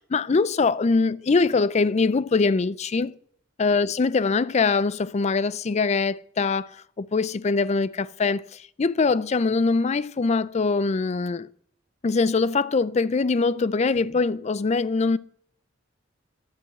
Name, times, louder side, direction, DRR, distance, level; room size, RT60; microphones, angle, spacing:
voice 1, 0.1-3.1 3.6-6.7 7.0-11.5 12.0-15.2, left 4 dB, 35° left, 0.4 m, -23 dB
12.0 x 7.8 x 7.7 m
head